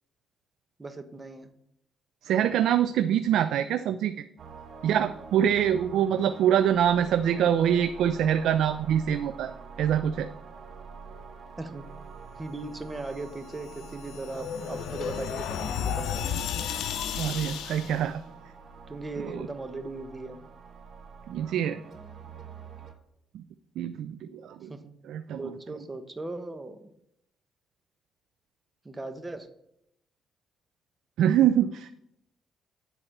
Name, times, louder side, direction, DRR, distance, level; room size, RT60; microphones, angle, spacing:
voice 1, 0.8-1.5 11.6-11.9 12.3-16.3 18.9-20.5 24.7-24.9 25.4-26.9 28.8-29.5, right 2 dB, 20° right, 8 dB, 1.1 m, -38 dB
voice 2, 2.2-4.1 4.8-9.5 9.8-10.3 17.2-18.2 19.3-19.5 21.3-21.8 23.3-23.4 23.8-24.7 25.1-25.4 31.2-31.9, right 9 dB, 80° right, 11 dB, 0.4 m, -25 dB
sound 1, 4.4-22.9, right 5 dB, 55° right, 1.3 m, -46 dB
sound 2, 13.5-18.0, left 8 dB, 80° left, 0.7 m, -33 dB
10.0 x 4.2 x 6.7 m, 0.77 s
cardioid pair, 90°, 0 cm